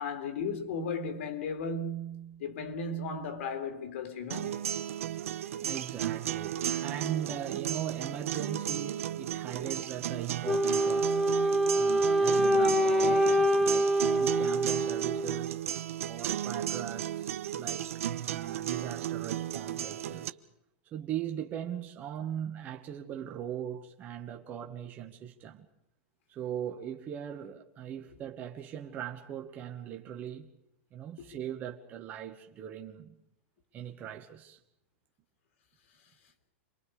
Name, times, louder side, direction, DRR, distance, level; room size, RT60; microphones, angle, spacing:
voice 1, 0.0-4.7 31.2-31.3, left 3 dB, 65° left, 3.5 m, -35 dB
sound 1, 4.3-20.3, right 11 dB, 90° right, 1.1 m, -34 dB
voice 2, 5.0-11.2 11.7-15.6 16.0-17.9 18.2-20.4 20.9-25.7 26.3-30.5 30.9-33.1 33.7-34.6, right 9 dB, 25° right, 1.5 m, -40 dB
Wind instrument woodwind instrument, 10.4-15.5, right 1 dB, ahead, 1.7 m, -26 dB
28.5 x 22.5 x 4.9 m
supercardioid pair, 165°, 7 cm